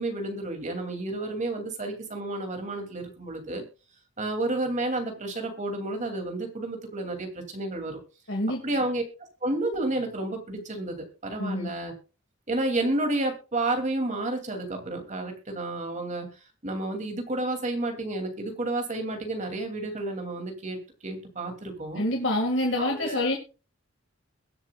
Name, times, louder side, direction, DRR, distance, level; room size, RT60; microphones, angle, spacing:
voice 1, 0.0-3.6 4.2-8.0 8.6-9.0 9.4-11.9 12.5-16.3 16.6-22.0 22.8-23.3, right 2 dB, 40° right, 4 dB, 2.8 m, -31 dB
voice 2, 8.3-8.6 11.4-11.7 22.0-23.4, left 1 dB, 70° left, 1 dB, 2.0 m, -26 dB
22.0 x 7.6 x 2.4 m, 0.33 s
head